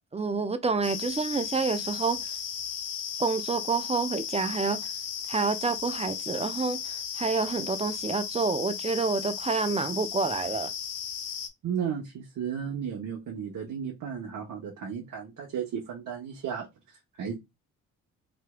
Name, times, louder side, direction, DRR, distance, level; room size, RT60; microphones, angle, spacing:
voice 1, 0.1-2.3 3.2-4.9 5.3-10.7, right 4 dB, 15° right, 0.5 m, -28 dB
sound 1, 0.8-11.5, left 7 dB, 55° left, 0.7 m, -35 dB
voice 2, 11.6-17.4, right 7 dB, 55° right, 1.0 m, -34 dB
3.1 x 2.9 x 2.2 m
hypercardioid pair, 50°, 37 cm